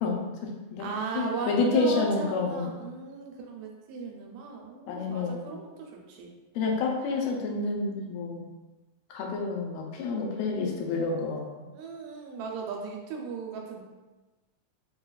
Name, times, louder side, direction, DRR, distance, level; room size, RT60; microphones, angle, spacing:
voice 1, 0.0-0.9 1.1-2.7 4.9-5.4 6.6-8.5 9.1-11.5, left 3 dB, 85° left, 0 dB, 2.3 m, -29 dB
voice 2, 0.8-6.3 11.7-13.8, right 4 dB, 85° right, 0 dB, 2.5 m, -37 dB
6.5 x 2.3 x 2.3 m, 1.2 s
omnidirectional pair, 4.1 m